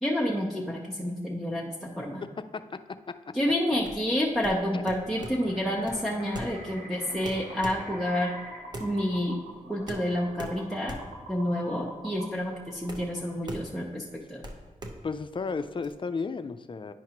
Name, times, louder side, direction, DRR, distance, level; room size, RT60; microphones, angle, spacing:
voice 1, 0.0-2.2 3.3-8.3 8.8-9.4 9.7-11.0 11.3-14.0 14.3-14.4, equal, ahead, -5 dB, 0.8 m, -29 dB
voice 2, 2.2-3.4 4.7-4.8 15.0-16.9, left 4 dB, 35° left, 11 dB, 0.4 m, -34 dB
sound 1, 3.7-15.9, right 1 dB, 30° right, 0.8 m, -42 dB
sound 2, 5.1-13.6, right 1 dB, 70° right, 1.4 m, -45 dB
10.5 x 4.6 x 2.9 m, 1.4 s
cardioid pair, 75°, 14 cm